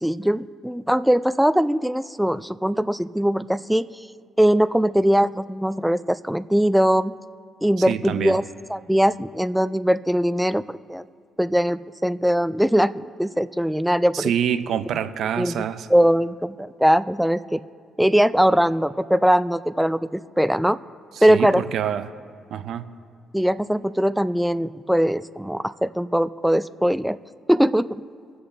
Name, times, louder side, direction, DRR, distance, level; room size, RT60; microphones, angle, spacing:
voice 1, 0.0-3.9 4.4-7.1 7.6-8.4 8.7-11.0 11.4-14.3 15.4-15.6 15.9-17.6 18.0-20.8 21.2-21.6 23.3-27.2 27.5-27.9, equal, ahead, 15 dB, 0.3 m, -21 dB
voice 2, 7.9-8.4 14.1-15.9 21.2-22.1 22.5-22.9, right 9 dB, 70° right, 12 dB, 0.5 m, -26 dB
23.0 x 7.8 x 3.4 m, 2.4 s
cardioid pair, 90°, 0 cm